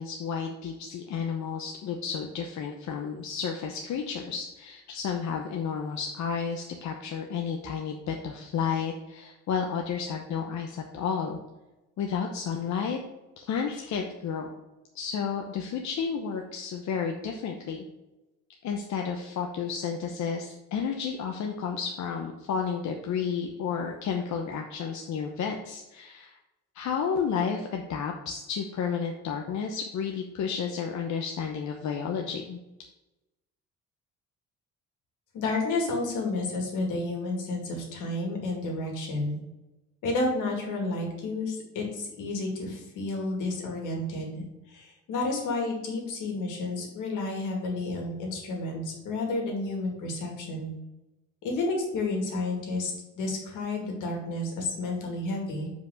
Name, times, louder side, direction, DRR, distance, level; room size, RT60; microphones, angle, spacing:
voice 1, 0.0-11.4 12.0-13.0 13.4-14.5 14.9-17.8 18.6-26.3 26.7-32.6, left 6 dB, 65° left, 2 dB, 0.9 m, -32 dB
voice 2, 35.3-39.4 40.0-50.7 51.4-55.7, left 2 dB, 85° left, 1 dB, 2.3 m, -31 dB
5.3 x 5.0 x 6.3 m, 1.0 s
cardioid pair, 90°, 30 cm